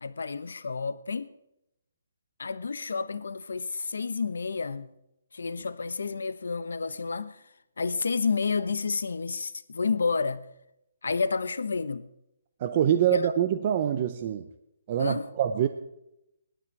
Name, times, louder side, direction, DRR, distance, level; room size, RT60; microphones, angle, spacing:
voice 1, 0.0-1.3 2.4-4.9 5.3-7.4 7.8-10.5 11.0-12.1 13.1-13.2 15.0-15.3, left 4 dB, 85° left, 1.0 m, -30 dB
voice 2, 12.6-14.5 14.9-15.7, right 10 dB, 25° right, 0.7 m, -25 dB
18.0 x 12.5 x 4.8 m
hypercardioid pair, 175°, 0 cm